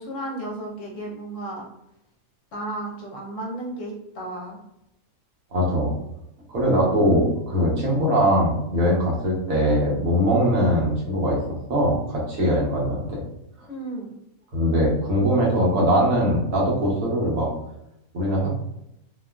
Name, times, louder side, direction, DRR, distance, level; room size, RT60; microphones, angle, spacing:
voice 1, 0.0-1.6 2.5-4.6 13.7-14.1, right 1 dB, 65° left, -2 dB, 1.0 m, -33 dB
voice 2, 5.5-5.9 6.5-11.4 11.7-13.2 14.5-17.5 18.1-18.5, equal, 70° right, -4 dB, 1.2 m, -21 dB
2.8 x 2.3 x 2.2 m, 0.82 s
omnidirectional pair, 1.5 m